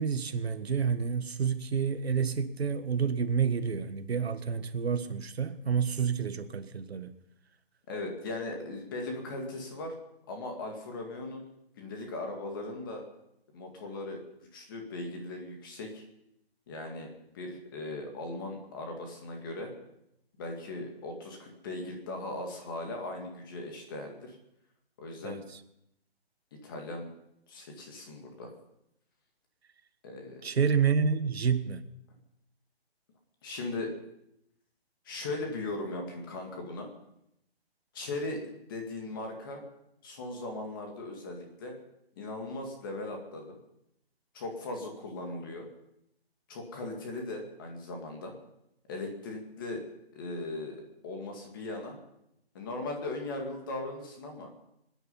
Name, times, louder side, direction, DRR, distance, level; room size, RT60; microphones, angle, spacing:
voice 1, 0.0-7.1 25.2-25.4 30.4-31.8, right 6 dB, 80° right, 1.5 m, -29 dB
voice 2, 7.9-9.9 10.3-11.4 11.8-13.0 13.5-14.2 14.5-16.0 16.7-17.1 17.3-19.7 20.4-24.4 25.0-25.4 26.5-27.1 27.5-28.5 30.0-30.4 33.4-33.9 35.0-36.9 37.9-38.4 38.7-39.6 40.0-41.8 42.2-43.6 44.3-45.7 46.5-48.4 48.8-49.8 50.1-52.0 52.5-54.5, left 2 dB, 20° left, 2.1 m, -38 dB
24.5 x 10.0 x 5.6 m
hypercardioid pair, 180°, 31 cm